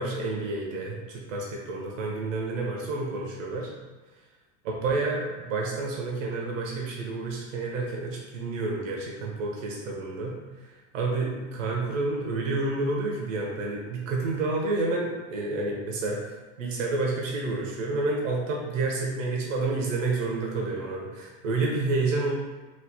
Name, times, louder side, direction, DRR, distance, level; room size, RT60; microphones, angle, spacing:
voice 1, 0.0-3.7 4.6-10.4 10.9-16.2 16.6-22.3, right 3 dB, 85° right, -1 dB, 0.8 m, -29 dB
3.0 x 2.3 x 3.4 m, 1.3 s
hypercardioid pair, 95°, 37 cm